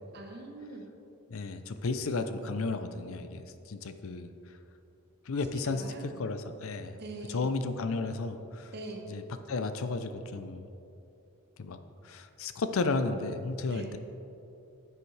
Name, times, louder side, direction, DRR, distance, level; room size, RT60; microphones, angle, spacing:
voice 1, 0.1-0.8 5.6-6.2 7.0-7.5 8.7-9.1 13.7-14.0, right 2 dB, 45° right, 3 dB, 1.0 m, -43 dB
voice 2, 1.3-3.4 3.7-4.3 5.3-7.0 7.3-8.7 9.1-9.2 9.5-10.7 11.6-11.8 12.0-14.0, left 3 dB, 70° left, 9 dB, 0.5 m, -33 dB
10.5 x 7.9 x 3.3 m, 2.8 s
head